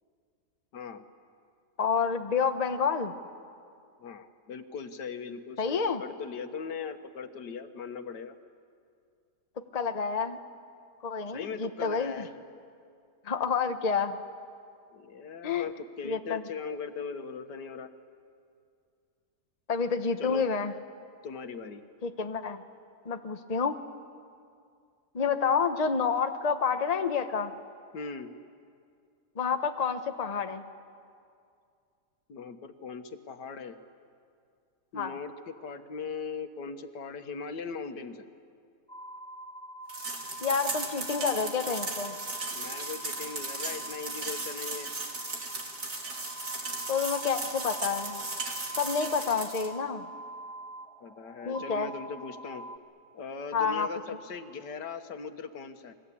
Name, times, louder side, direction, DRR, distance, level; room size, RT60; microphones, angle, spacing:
voice 1, 0.7-1.0 4.0-8.4 11.3-12.3 14.9-17.9 20.2-20.5 21.2-21.8 27.9-28.3 32.3-33.8 34.9-38.3 42.5-44.9 51.0-52.6 53.1-55.9, left 5 dB, 90° left, 8 dB, 1.8 m, -39 dB
voice 2, 1.8-3.1 5.6-6.0 9.7-10.4 11.0-12.3 13.2-14.2 15.4-15.7 16.0-16.4 19.7-20.7 22.0-22.6 23.0-23.8 25.1-27.5 29.4-30.6 34.9-35.1 40.4-42.2 46.9-48.2 48.8-50.1 51.4-51.9 53.5-53.9, left 5 dB, 25° left, 7 dB, 1.0 m, -29 dB
sound 1, 38.9-52.8, right 1 dB, 5° left, 1.7 m, -45 dB
sound 2, 39.9-49.7, right 3 dB, 65° right, 3.5 m, -36 dB
29.5 x 22.5 x 8.5 m, 2.3 s
omnidirectional pair, 1.8 m